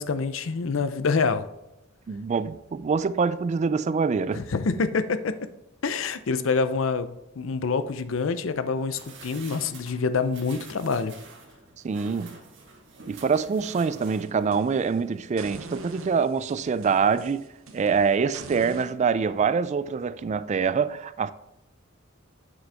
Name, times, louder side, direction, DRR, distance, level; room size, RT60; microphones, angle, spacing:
voice 1, 0.0-1.5 4.3-5.3 5.8-7.1 7.4-11.1, left 4 dB, 70° left, 0.5 m, -26 dB
voice 2, 2.1-4.4 11.8-12.4 13.1-17.5 17.7-21.3, right 5 dB, 35° right, 0.3 m, -25 dB
sound 1, 8.9-14.6 15.0-15.1, right 4 dB, 65° right, 1.5 m, -47 dB
sound 2, 13.5-15.0 15.4-18.9, right 3 dB, 90° right, 0.8 m, -44 dB
7.5 x 6.2 x 3.4 m
head